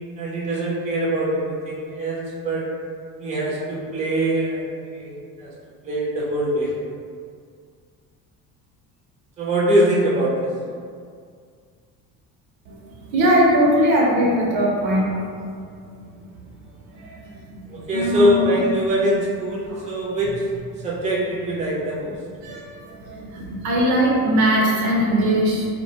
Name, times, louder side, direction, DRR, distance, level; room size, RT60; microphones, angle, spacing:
voice 1, 0.2-2.2 2.4-2.6 3.2-5.5 5.8-6.7 9.4-10.5 17.7-20.4 20.8-22.1, right 1 dB, 15° right, -6 dB, 0.6 m, -23 dB
voice 2, 12.7-15.6 15.8-16.2 16.9-18.6 19.7-19.8 22.4-25.7, equal, 60° right, -3 dB, 0.7 m, -21 dB
2.2 x 2.1 x 2.8 m, 2.1 s
supercardioid pair, 85°, 42 cm